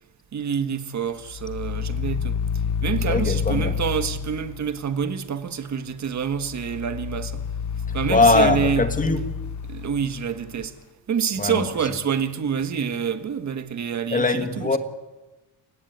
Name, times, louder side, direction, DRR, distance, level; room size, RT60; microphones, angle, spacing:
voice 1, 0.3-2.4 2.8-7.4 7.9-8.8 9.7-10.7 11.1-14.8, right 7 dB, 45° right, 1.6 m, -27 dB
sound 1, 1.2-4.9 6.3-10.7, left 7 dB, 45° left, 1.1 m, -29 dB
voice 2, 3.1-3.8 8.1-9.2 11.4-11.7 14.1-14.8, left 3 dB, 20° left, 1.9 m, -21 dB
30.0 x 17.5 x 9.5 m
cardioid pair, 170°, 41 cm